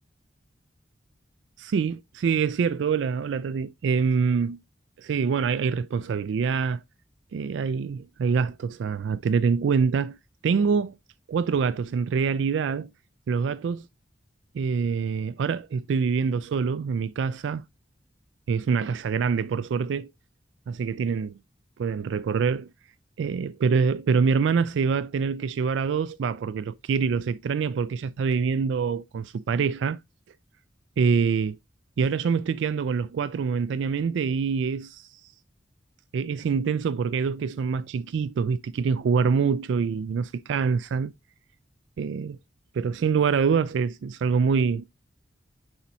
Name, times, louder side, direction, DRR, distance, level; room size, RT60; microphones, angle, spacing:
voice 1, 1.6-4.6 5.0-6.8 7.3-10.2 10.4-11.0 11.3-12.9 13.3-13.9 14.5-17.6 18.5-20.1 20.7-21.4 21.8-22.7 23.2-30.0 31.0-31.6 32.0-35.3 36.1-41.1 42.0-42.4 42.7-44.8, right 5 dB, 80° right, 0.3 m, -25 dB
9.9 x 4.2 x 2.7 m
head